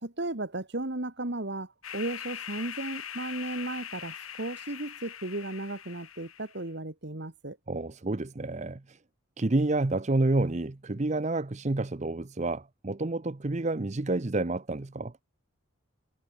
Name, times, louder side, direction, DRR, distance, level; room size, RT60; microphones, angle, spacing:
voice 1, 0.0-7.6, right 2 dB, 55° right, 1.9 m, -35 dB
sound 1, 1.8-6.6, left 9 dB, 90° left, 6.5 m, -42 dB
voice 2, 7.7-9.0 9.4-15.1, right 2 dB, 35° right, 0.7 m, -29 dB
head